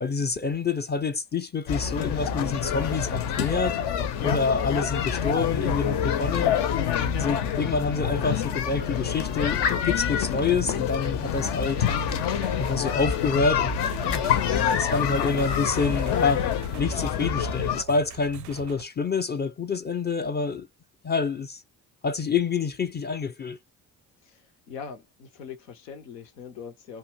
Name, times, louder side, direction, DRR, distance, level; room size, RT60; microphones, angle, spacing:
voice 1, 0.0-3.8 4.2-6.6 7.2-11.9 12.6-13.7 14.0-14.4 14.7-16.5 16.8-20.7 21.0-21.6 22.0-23.6, left 4 dB, 20° left, 0.5 m, -27 dB
sound 1, 1.7-17.8, left 8 dB, 55° left, 0.8 m, -27 dB
sound 2, 11.6-18.9, right 11 dB, 40° right, 0.4 m, -41 dB
voice 2, 24.2-27.0, left 6 dB, 85° left, 0.8 m, -42 dB
2.7 x 2.3 x 2.7 m
hypercardioid pair, 45°, 48 cm